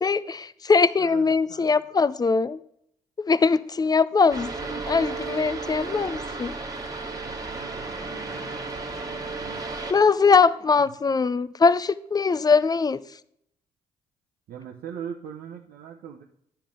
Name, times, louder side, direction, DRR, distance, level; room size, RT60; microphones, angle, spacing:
voice 1, 0.0-2.6 3.2-6.5 9.9-13.0, left 4 dB, 25° left, 0.4 m, -21 dB
voice 2, 1.0-1.8 7.1-8.5 9.4-9.7 10.8-10.9 14.5-16.2, right 8 dB, 60° right, 0.8 m, -41 dB
sound 1, 4.3-9.9, right 3 dB, 20° right, 1.7 m, -33 dB
sound 2, 8.0-10.5 12.2-12.3, left 4 dB, 70° left, 1.4 m, -49 dB
9.8 x 5.7 x 3.7 m
hypercardioid pair, 45°, 17 cm